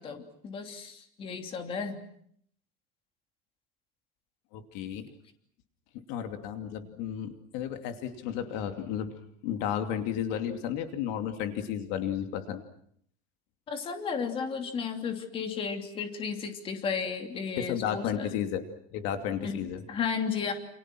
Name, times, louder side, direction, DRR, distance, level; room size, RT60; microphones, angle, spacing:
voice 1, 0.0-2.0 13.7-18.4 19.4-20.5, left 6 dB, 25° left, 5 dB, 3.0 m, -34 dB
voice 2, 4.5-5.1 6.1-9.1 9.4-12.6 17.6-18.6 18.9-19.8, left 9 dB, 60° left, 6 dB, 2.7 m, -33 dB
29.5 x 29.0 x 6.2 m, 0.67 s
cardioid pair, 175°, 20 cm